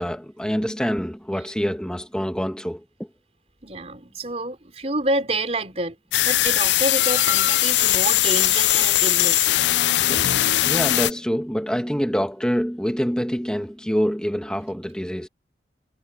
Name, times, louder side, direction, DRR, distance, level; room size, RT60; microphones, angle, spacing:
voice 1, 0.0-3.1 10.0-10.3 10.6-15.3, equal, 5° left, 1.4 m, -26 dB
voice 2, 3.6-5.9 6.2-9.5, right 1 dB, 35° right, 4.5 m, -28 dB
sound 1, 6.1-11.1, left 14 dB, 80° left, 0.4 m, -20 dB
head